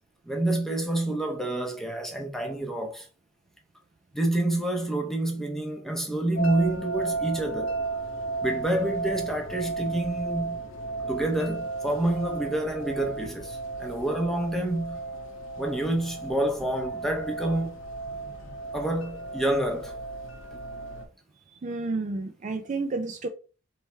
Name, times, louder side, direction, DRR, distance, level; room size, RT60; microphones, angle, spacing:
voice 1, 0.3-3.1 4.1-7.7 8.4-10.6 11.1-15.0 15.6-17.8 18.7-19.9, right 1 dB, ahead, 0.7 m, -28 dB
sound 1, 6.4-21.1, right 3 dB, 80° left, 1.0 m, -34 dB
voice 2, 21.6-23.3, right 3 dB, 35° right, 0.4 m, -30 dB
3.4 x 3.2 x 4.3 m
head